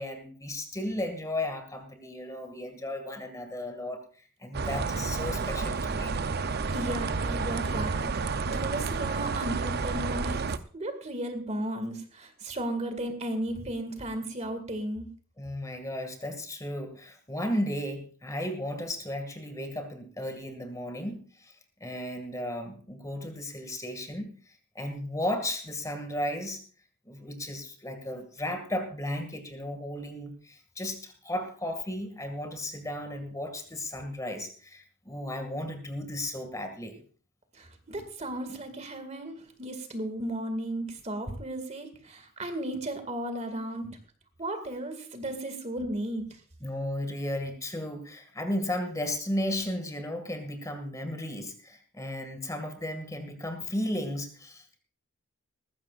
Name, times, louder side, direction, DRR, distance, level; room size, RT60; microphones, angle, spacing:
voice 1, 0.0-4.0 4.4-6.1 15.4-21.5 21.8-24.3 24.8-26.6 27.1-37.0 46.6-54.8, left 1 dB, 15° left, 6 dB, 2.0 m, -34 dB
sound 1, 4.5-10.6, right 4 dB, 50° right, 0.6 m, -30 dB
voice 2, 6.7-10.5 10.7-15.1 37.5-44.0 44.4-46.4, right 1 dB, 35° right, 8 dB, 2.1 m, -35 dB
19.5 x 15.0 x 2.5 m, 0.40 s
head